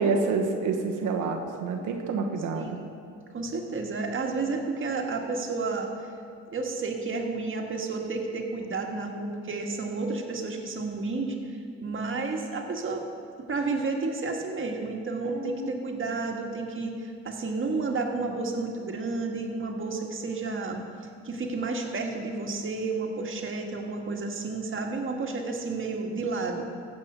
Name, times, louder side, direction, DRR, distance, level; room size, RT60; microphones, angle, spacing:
voice 1, 0.0-2.8 15.3-15.8, right 4 dB, 85° right, 3 dB, 1.4 m, -28 dB
voice 2, 3.3-5.9 6.5-11.3 11.8-13.1 13.4-20.8 21.2-26.6, right 3 dB, 40° right, 2 dB, 1.7 m, -31 dB
15.5 x 5.4 x 6.9 m, 2.3 s
cardioid pair, 90°, 30 cm